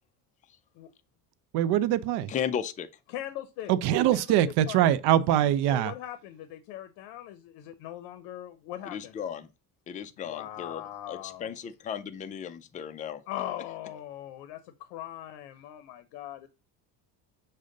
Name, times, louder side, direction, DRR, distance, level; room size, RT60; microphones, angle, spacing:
voice 1, 1.5-2.3 3.7-5.9, right 11 dB, 75° right, 0.5 m, -23 dB
voice 2, 2.3-2.9 8.9-9.5 9.9-10.8 11.1-13.2, left 8 dB, 20° left, 0.3 m, -35 dB
voice 3, 3.1-3.7 4.1-4.3 4.7-4.8 5.7-9.2 10.2-11.5 13.3-16.5, left 12 dB, 85° left, 0.6 m, -40 dB
6.4 x 2.2 x 3.7 m
cardioid pair, 105°, 41 cm